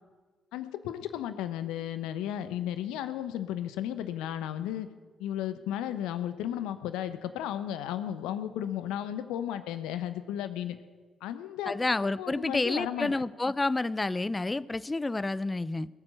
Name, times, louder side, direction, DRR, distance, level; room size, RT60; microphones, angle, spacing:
voice 1, 0.5-4.9 5.2-10.8 11.2-13.1, left 11 dB, 75° left, 12 dB, 0.9 m, -34 dB
voice 2, 11.7-15.9, left 2 dB, 25° left, 18 dB, 0.6 m, -29 dB
20.5 x 7.5 x 7.9 m, 1.4 s
hypercardioid pair, 40°, 0 cm